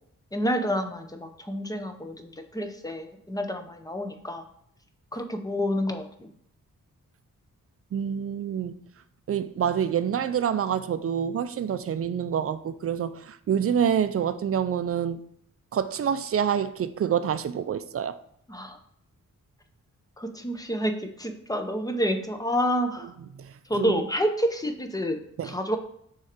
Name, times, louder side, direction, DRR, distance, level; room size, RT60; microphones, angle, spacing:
voice 1, 0.3-4.4 5.1-6.3 18.5-18.8 20.2-23.1 23.7-25.2 25.4-25.8, equal, 10° left, 0.7 m, -29 dB
voice 2, 7.9-8.7 9.3-15.2 15.7-18.1 23.3-24.0 25.4-25.5, right 8 dB, 45° right, 0.4 m, -27 dB
6.3 x 3.8 x 4.4 m
wide cardioid pair, 150°, 33 cm